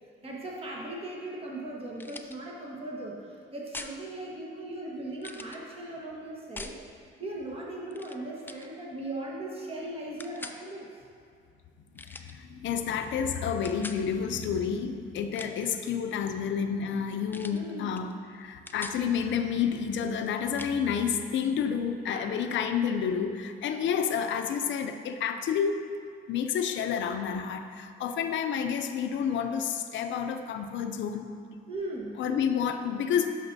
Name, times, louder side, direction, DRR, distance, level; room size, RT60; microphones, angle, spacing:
voice 1, 0.2-6.7 7.2-10.9 17.5-17.9 22.0-22.3 31.7-32.1, right 1 dB, 30° right, -3 dB, 1.4 m, -38 dB
sound 1, 2.0-2.4 3.7-4.0 5.2-5.6 6.6-6.8 7.9-8.2 8.5-8.7 10.2-10.6 12.0-12.3 13.6-14.0 15.2-15.7 17.3-17.6 18.0-18.1 18.4-19.0 20.6-20.7, left 2 dB, 10° left, 0.4 m, -42 dB
voice 2, 12.0-25.8 26.3-31.3 32.2-33.3, left 7 dB, 70° left, 7 dB, 0.6 m, -30 dB
10.5 x 5.9 x 2.7 m, 2.2 s
cardioid pair, 90°, 20 cm